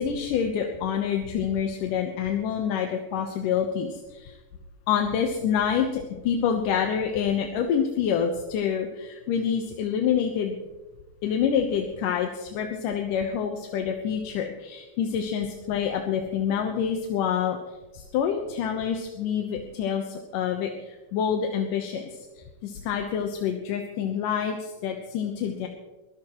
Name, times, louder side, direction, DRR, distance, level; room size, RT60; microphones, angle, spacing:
voice 1, 0.0-4.3 4.9-10.6 11.2-17.6 17.9-22.2 22.6-25.7, left 8 dB, 70° left, 3 dB, 2.4 m, -27 dB
22.5 x 15.5 x 3.1 m, 1.1 s
omnidirectional pair, 4.4 m